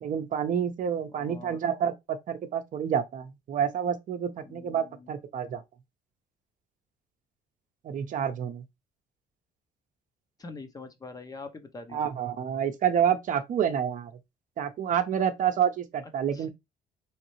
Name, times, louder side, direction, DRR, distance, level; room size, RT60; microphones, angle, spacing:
voice 1, 0.0-5.6 7.8-8.6 11.9-14.1 14.6-16.5, right 8 dB, 50° right, 0.7 m, -28 dB
voice 2, 1.1-1.6 4.4-5.1 10.4-12.1 16.3-16.5, left 3 dB, 20° left, 0.7 m, -44 dB
3.8 x 3.2 x 3.0 m
cardioid pair, 110°, 17 cm